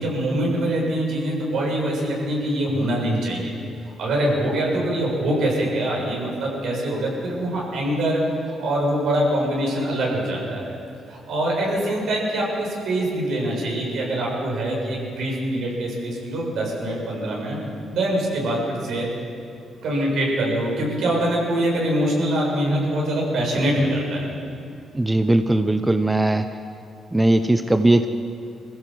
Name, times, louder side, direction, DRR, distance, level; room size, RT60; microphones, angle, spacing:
voice 1, 0.0-3.5 4.0-8.2 8.6-10.8 11.1-17.6 17.9-19.1 19.8-24.4, right 1 dB, 70° right, -2 dB, 7.1 m, -24 dB
voice 2, 24.9-26.4 27.1-28.1, right 1 dB, 10° right, 9 dB, 0.8 m, -19 dB
23.0 x 15.5 x 7.8 m, 2.5 s
cardioid pair, 90°, 0 cm